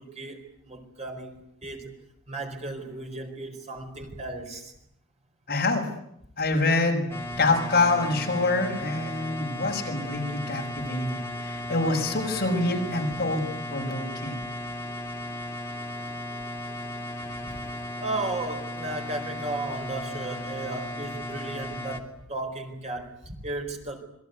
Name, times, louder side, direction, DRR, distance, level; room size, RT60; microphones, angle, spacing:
voice 1, 0.0-1.9 2.3-4.7 11.1-11.5 17.4-17.6 18.0-24.0, right 2 dB, 30° right, 4 dB, 4.5 m, -35 dB
voice 2, 5.5-5.8 6.4-7.0 7.4-13.4 13.7-14.4, left 2 dB, 45° left, 1 dB, 6.1 m, -26 dB
sound 1, 7.1-22.0, left 1 dB, 10° left, 2.7 m, -36 dB
27.5 x 22.0 x 9.5 m, 0.75 s
head